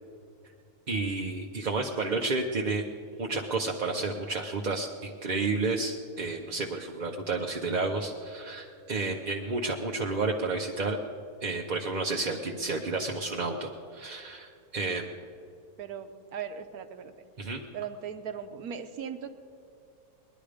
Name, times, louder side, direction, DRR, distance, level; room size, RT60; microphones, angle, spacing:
voice 1, 0.9-2.8 3.2-11.0 11.4-15.0 17.4-17.6, right 3 dB, 40° right, 1 dB, 0.7 m, -31 dB
voice 2, 15.8-17.1 17.7-19.4, right 7 dB, 75° right, 9 dB, 1.3 m, -38 dB
20.0 x 11.0 x 5.1 m, 2.4 s
omnidirectional pair, 1.6 m